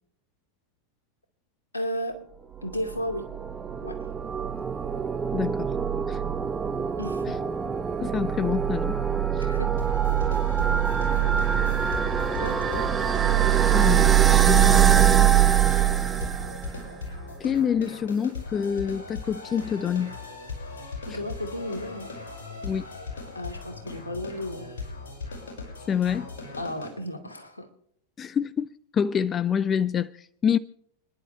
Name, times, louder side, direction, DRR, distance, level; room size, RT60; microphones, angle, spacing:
voice 1, 1.7-2.2 2.6-3.3 3.8-4.1 7.0-7.4 9.4-9.8 11.0-11.3 12.4-12.9 21.1-22.1 23.3-24.9 26.6-27.7, equal, 80° left, 2.6 m, -34 dB
sound 1, 2.7-16.9, right 10 dB, 20° right, 1.2 m, -23 dB
voice 2, 5.3-5.7 6.1-6.2 8.0-9.0 9.3-9.5 13.7-15.3 17.4-20.2 21.1-21.2 22.6-22.8 25.9-26.3 28.2-30.6, left 7 dB, 25° left, 0.5 m, -27 dB
sound 2, 9.8-26.9, left 4 dB, 60° left, 6.4 m, -39 dB
29.5 x 11.0 x 3.4 m
figure-of-eight pair, 90°, 0 cm